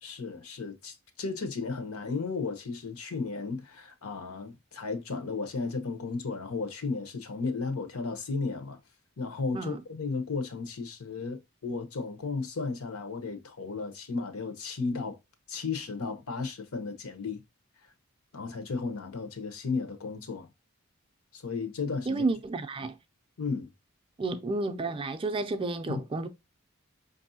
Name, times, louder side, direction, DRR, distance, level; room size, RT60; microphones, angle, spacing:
voice 1, 0.0-8.8 9.2-15.2 15.5-17.4 18.3-20.5 21.3-22.2 23.4-23.7 25.9-26.0, left 4 dB, 85° left, 0.8 m, -34 dB
voice 2, 22.1-23.0 24.2-26.3, right 3 dB, 25° right, 0.3 m, -31 dB
5.3 x 2.6 x 2.6 m
head